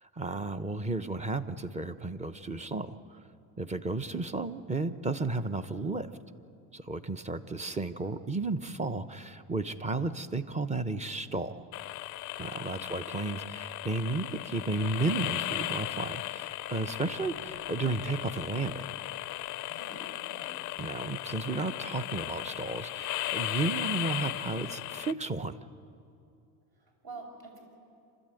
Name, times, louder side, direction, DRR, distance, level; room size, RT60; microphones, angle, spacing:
voice 1, 0.0-3.2 3.6-6.1 6.7-11.6 12.4-19.0 20.8-25.5, right 3 dB, 15° right, 11 dB, 0.8 m, -33 dB
sound 1, 11.7-25.1, left 17 dB, 45° left, 0.4 m, -36 dB
voice 2, 12.6-13.0 19.6-20.7 26.7-27.6, right 3 dB, 50° right, 1 dB, 6.5 m, -48 dB
28.0 x 13.0 x 9.1 m, 2.6 s
cardioid pair, 115°, 46 cm